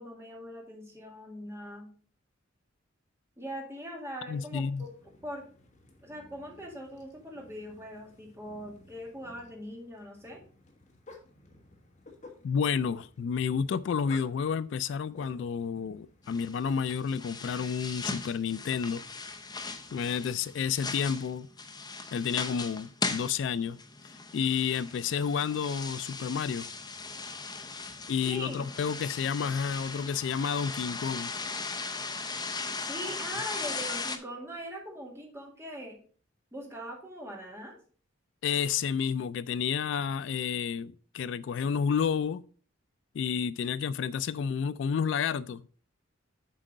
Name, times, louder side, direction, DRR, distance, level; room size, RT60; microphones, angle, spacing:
voice 1, 0.0-1.9 3.4-4.9 5.2-5.5 6.0-10.4 27.8-27.9 28.3-28.7 32.9-36.0 36.5-37.7, equal, 15° right, 1.9 m, -41 dB
voice 2, 4.3-4.8 12.4-19.0 19.9-21.5 22.1-23.8 24.3-26.7 28.1-31.3 38.4-42.4 43.1-45.6, left 7 dB, 65° left, 0.3 m, -30 dB
sound 1, 4.3-20.9, left 2 dB, 40° left, 1.5 m, -57 dB
sound 2, 16.2-34.2, left 4 dB, 20° left, 0.7 m, -38 dB
sound 3, 28.0-34.6, right 3 dB, 60° right, 3.4 m, -60 dB
7.5 x 4.5 x 5.1 m
head